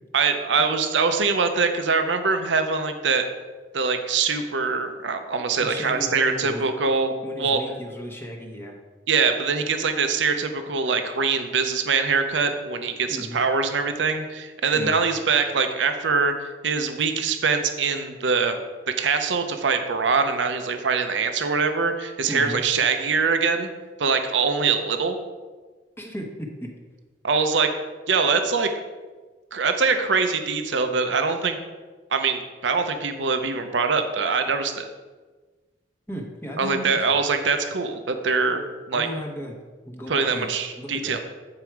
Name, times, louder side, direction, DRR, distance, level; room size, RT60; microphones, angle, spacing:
voice 1, 0.1-3.3 3.7-7.6 9.1-18.5 18.9-23.7 24.0-25.2 27.2-27.7 28.1-28.7 29.5-31.6 32.1-34.9 36.6-39.1 40.1-41.2, right 5 dB, 75° right, 7 dB, 0.7 m, -23 dB
voice 2, 5.6-6.7 7.2-8.7 13.1-13.4 14.7-15.0 22.3-22.6 26.0-26.7 36.1-37.2 38.9-39.5 39.9-40.5 40.8-41.2, equal, 15° left, 0 dB, 0.9 m, -35 dB
8.8 x 4.8 x 4.6 m, 1.3 s
head